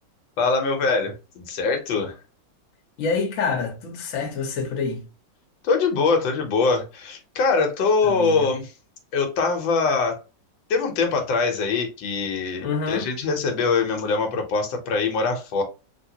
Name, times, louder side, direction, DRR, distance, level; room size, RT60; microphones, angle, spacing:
voice 1, 0.4-2.1 5.6-8.7 9.1-10.2 10.7-15.6, left 4 dB, 80° left, 1.5 m, -23 dB
voice 2, 3.0-5.0 8.1-8.5 12.6-13.1, left 4 dB, 50° left, 1.2 m, -27 dB
3.5 x 2.8 x 2.7 m
omnidirectional pair, 2.0 m